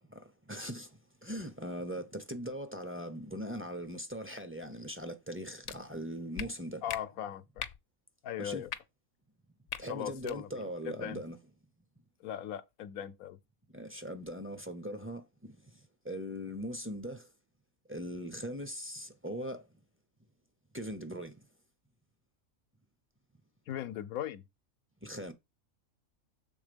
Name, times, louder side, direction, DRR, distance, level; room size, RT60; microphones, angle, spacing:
voice 1, 0.5-0.9 1.2-6.8 8.4-8.7 9.8-11.4 13.7-15.2 16.1-17.2 17.9-19.6 20.7-21.3 25.0-25.3, equal, 20° right, 0.3 m, -40 dB
sound 1, 5.6-5.8 6.4-6.5 6.9-7.0 7.6-7.8 8.7-8.8 9.7-9.8 10.2-10.4, left 9 dB, 65° left, 0.9 m, -39 dB
voice 2, 6.8-7.6 8.2-8.7 9.9-10.5 10.9-11.2 12.2-13.4 23.7-24.4, left 10 dB, 90° left, 1.1 m, -38 dB
7.1 x 3.5 x 5.1 m
omnidirectional pair, 1.5 m